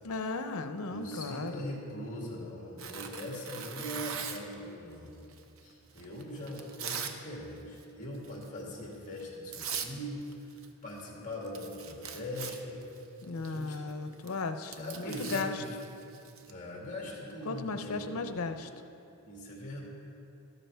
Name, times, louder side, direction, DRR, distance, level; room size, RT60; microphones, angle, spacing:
voice 1, 0.0-1.6 13.2-15.5 17.4-18.7, left 3 dB, 85° left, 8 dB, 0.6 m, -36 dB
voice 2, 0.9-5.2 5.6-12.8 13.4-13.8 14.1-14.3 14.8-15.8 16.5-18.3 19.2-19.8, left 1 dB, 35° left, -2 dB, 2.3 m, -41 dB
Tearing, 2.8-4.6 5.3-7.2 7.5-7.8 8.2-8.5 9.2-9.3 9.5-9.9 10.2-11.1 11.3-16.5, right 7 dB, 70° right, 0.7 m, -41 dB
13.0 x 12.0 x 3.5 m, 2.7 s
head